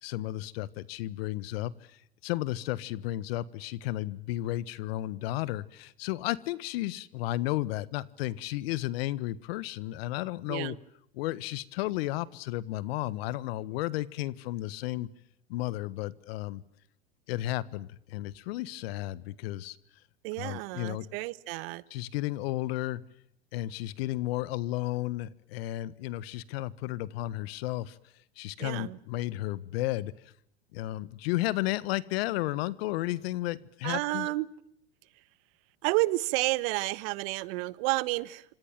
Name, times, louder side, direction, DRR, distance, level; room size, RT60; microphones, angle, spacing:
voice 1, 0.0-1.7 2.2-10.8 11.2-15.1 15.5-16.6 17.3-19.8 20.4-21.1 21.9-23.0 23.5-28.0 28.4-30.1 30.7-34.3, left 16 dB, 65° left, 19 dB, 1.5 m, -33 dB
voice 2, 20.2-21.8 28.6-29.0 33.8-34.5 35.8-38.4, right 21 dB, 60° right, 18 dB, 1.4 m, -30 dB
28.0 x 26.0 x 7.5 m, 0.72 s
hypercardioid pair, 90°, 32 cm